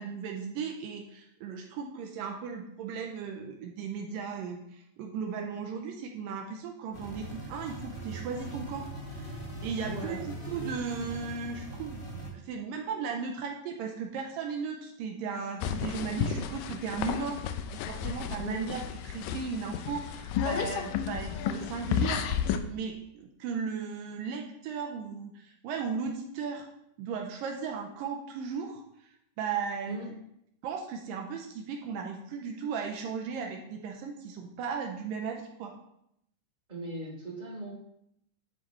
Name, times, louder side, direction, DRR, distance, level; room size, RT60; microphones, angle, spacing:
voice 1, 0.0-8.8 9.1-26.7 27.0-28.8 29.4-30.1 30.6-35.7, right 5 dB, 80° right, 2 dB, 2.5 m, -36 dB
sound 1, 6.9-12.3, right 1 dB, 35° left, 0.8 m, -40 dB
voice 2, 9.9-10.2 18.4-18.6 29.9-30.1 36.7-37.9, right 1 dB, 15° right, -4 dB, 3.2 m, -39 dB
sound 2, 15.6-22.6, left 8 dB, 80° left, 2.3 m, -32 dB
10.5 x 8.5 x 3.1 m, 0.76 s
omnidirectional pair, 4.0 m